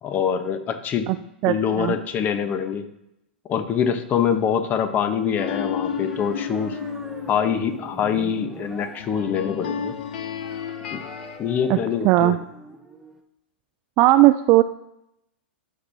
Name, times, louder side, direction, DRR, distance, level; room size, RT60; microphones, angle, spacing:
voice 1, 0.0-1.1 1.5-2.9 3.5-6.8 7.3-9.9 10.9-11.0 11.4-12.4, left 7 dB, 30° left, 9 dB, 0.9 m, -24 dB
voice 2, 1.4-1.9 11.7-11.8 12.0-12.4 14.0-14.6, right 16 dB, 40° right, 10 dB, 0.3 m, -17 dB
sound 1, 5.4-11.4, left 7 dB, 65° left, 0.6 m, -32 dB
sound 2, 5.8-13.2, right 1 dB, 5° right, 0.8 m, -44 dB
13.0 x 4.6 x 2.7 m, 0.83 s
hypercardioid pair, 105°, 6 cm